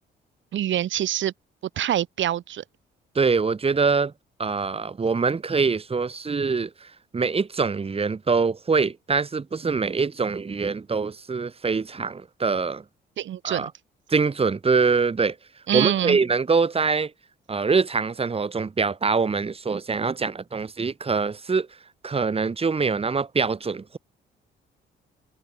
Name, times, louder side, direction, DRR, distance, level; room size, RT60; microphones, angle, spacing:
voice 1, 0.5-1.3 1.8-2.6 13.2-13.6 15.7-16.2, right 11 dB, 70° right, 4.5 m, -25 dB
voice 2, 3.1-4.1 4.4-12.8 13.4-13.7 14.1-15.4 15.7-17.1 17.5-21.7 22.0-24.0, right 4 dB, 30° right, 2.2 m, -24 dB
cardioid pair, 90°, 20 cm